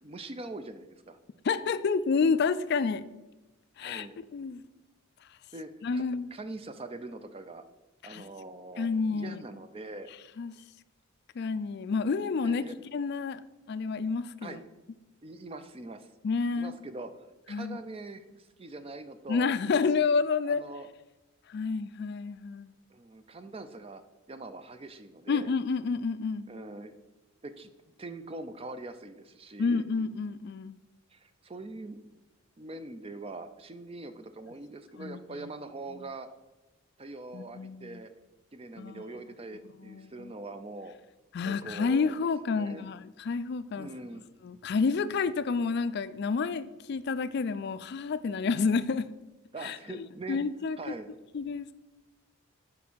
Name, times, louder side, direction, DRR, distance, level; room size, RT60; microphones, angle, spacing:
voice 1, 0.0-1.2 3.8-4.2 5.5-6.0 6.3-7.7 8.0-10.1 12.4-12.7 14.4-14.6 15.2-16.1 16.5-19.5 20.5-20.9 22.9-24.0 24.3-25.5 26.5-26.9 27.4-27.7 28.0-29.8 31.1-32.0 32.6-36.3 37.0-38.1 38.5-41.0 41.4-42.1 42.5-42.9 43.7-44.3 49.5-50.4 50.8-51.1, right 2 dB, 25° right, 10 dB, 0.4 m, -43 dB
voice 2, 1.4-3.1 3.8-4.1 4.3-4.6 5.8-6.3 8.0-8.2 8.8-9.4 10.4-10.5 11.4-12.6 12.9-13.4 13.7-14.6 16.2-16.7 17.5-17.8 19.3-20.7 21.5-22.7 25.3-26.5 29.6-30.8 35.0-35.5 37.3-38.0 38.8-39.0 39.8-40.3 41.3-43.9 44.4-49.1 49.6-50.8 51.3-51.7, left 5 dB, 50° left, 14 dB, 0.3 m, -29 dB
5.8 x 5.2 x 6.2 m, 1.1 s
head